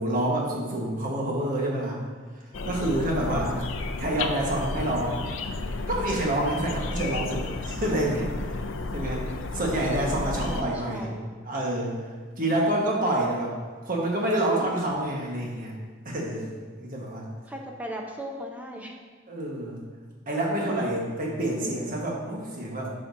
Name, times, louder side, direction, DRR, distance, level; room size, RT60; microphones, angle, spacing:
voice 1, 0.0-2.0 2.6-3.6 4.0-5.2 5.9-8.6 8.9-9.3 9.5-11.1 11.5-12.1 12.4-13.5 13.8-15.7 16.0-17.2 19.3-19.8 20.3-22.9, right 1 dB, 45° right, -2 dB, 1.5 m, -27 dB
sound 1, 2.5-10.6, left 3 dB, 70° left, 0.5 m, -32 dB
voice 2, 3.2-3.7 10.5-11.3 17.5-19.0, equal, 10° right, 0 dB, 0.8 m, -38 dB
9.7 x 6.1 x 2.7 m, 1.5 s
head